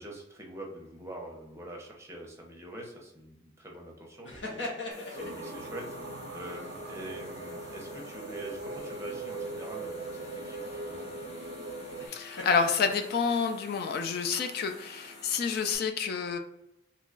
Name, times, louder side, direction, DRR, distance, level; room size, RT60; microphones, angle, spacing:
voice 1, 0.0-11.1, right 1 dB, 15° right, -1 dB, 0.6 m, -45 dB
sound 1, 4.2-5.7 8.7-9.3 12.0-13.5, left 2 dB, 75° left, 0.9 m, -40 dB
sound 2, 4.9-15.8, left 2 dB, 35° left, 0.9 m, -49 dB
sound 3, 5.1-12.1, right 2 dB, 55° right, 0.3 m, -40 dB
voice 2, 12.1-16.4, left 5 dB, 55° left, 6 dB, 0.3 m, -29 dB
3.0 x 2.2 x 3.7 m, 0.87 s
head